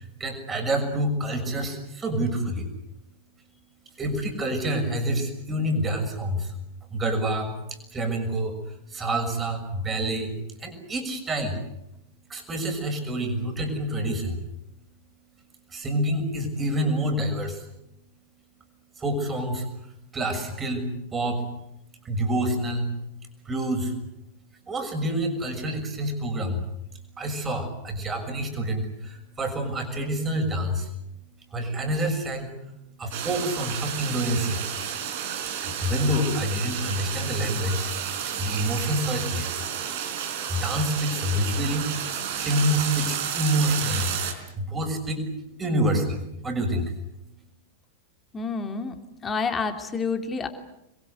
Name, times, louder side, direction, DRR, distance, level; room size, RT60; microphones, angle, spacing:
voice 1, 0.0-2.7 4.0-6.5 6.9-8.6 8.9-10.3 10.6-11.6 12.3-14.4 15.7-17.6 19.0-19.6 20.1-21.4 22.0-22.9 23.4-23.9 24.7-26.6 27.2-30.9 31.5-32.5 33.0-34.6 35.6-37.9 38.4-39.6 40.5-44.1 44.5-45.2 45.6-46.9, right 1 dB, 20° right, 5 dB, 6.5 m, -27 dB
sound 1, 33.1-44.3, right 9 dB, 50° right, 4.6 m, -31 dB
voice 2, 48.3-49.0 49.2-50.5, left 4 dB, 20° left, 6 dB, 3.3 m, -28 dB
28.0 x 22.5 x 8.2 m, 0.85 s
figure-of-eight pair, 90°, 0 cm